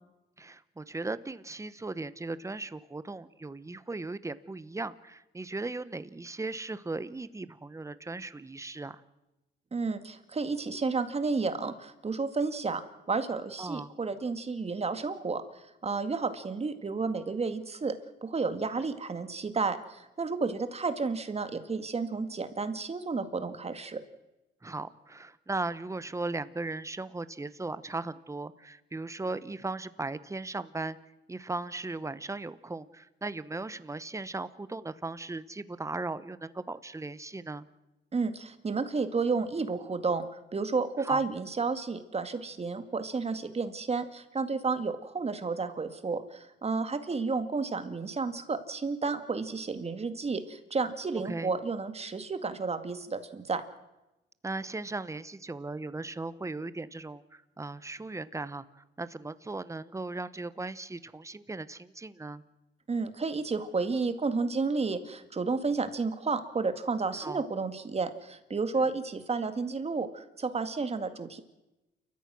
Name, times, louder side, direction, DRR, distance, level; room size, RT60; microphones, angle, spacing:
voice 1, 0.4-9.0 13.6-13.9 24.6-31.0 31.3-37.7 41.0-41.2 51.2-51.5 54.4-62.4 67.2-67.4, right 3 dB, 15° right, 14 dB, 1.1 m, -37 dB
voice 2, 9.7-12.8 13.1-24.0 38.1-53.6 62.9-71.4, right 4 dB, 30° right, 10 dB, 2.0 m, -31 dB
29.5 x 14.5 x 6.2 m, 0.98 s
cardioid pair, 90°, 20 cm